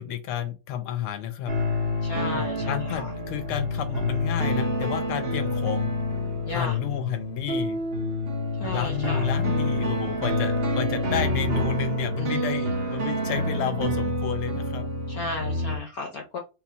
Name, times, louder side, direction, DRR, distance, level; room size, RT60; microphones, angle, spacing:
voice 1, 0.0-1.5 2.2-5.9 6.5-7.8 8.7-14.9, left 9 dB, 80° left, 7 dB, 1.5 m, -31 dB
sound 1, 1.5-15.8, left 1 dB, 35° right, 1.0 m, -27 dB
voice 2, 2.0-2.8 6.5-6.8 8.6-9.2 12.2-12.5 15.1-16.4, left 3 dB, 65° left, 2 dB, 0.9 m, -33 dB
5.4 x 2.3 x 4.3 m, 0.29 s
omnidirectional pair, 2.4 m